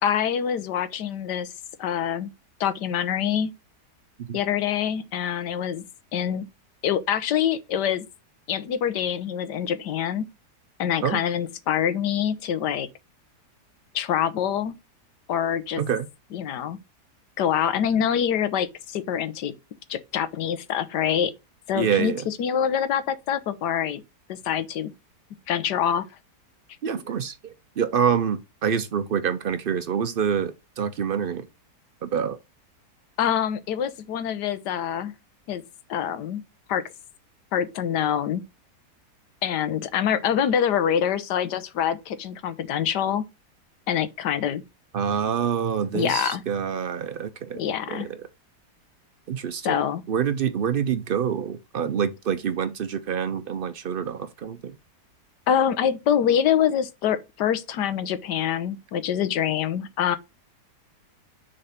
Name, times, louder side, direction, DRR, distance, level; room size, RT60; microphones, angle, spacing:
voice 1, 0.0-1.5 1.8-2.3 2.6-3.5 4.3-5.8 6.1-6.4 6.8-8.0 8.5-10.3 10.8-12.9 13.9-14.7 15.3-15.8 16.3-16.8 17.4-19.5 19.9-21.3 21.7-24.0 24.3-24.9 25.5-26.0 33.2-35.1 35.5-35.6 35.9-36.4 36.7-36.8 37.5-38.4 39.4-43.2 43.9-44.6 45.9-46.4 47.5-48.1 49.6-50.0 55.5-60.2, left 9 dB, 80° left, 1.4 m, -25 dB
voice 2, 21.7-22.2 26.8-31.5 32.0-32.4 44.9-47.6 47.9-48.2 49.3-49.8 50.1-54.7, right 7 dB, 90° right, 0.4 m, -26 dB
6.7 x 3.9 x 5.7 m
omnidirectional pair, 1.8 m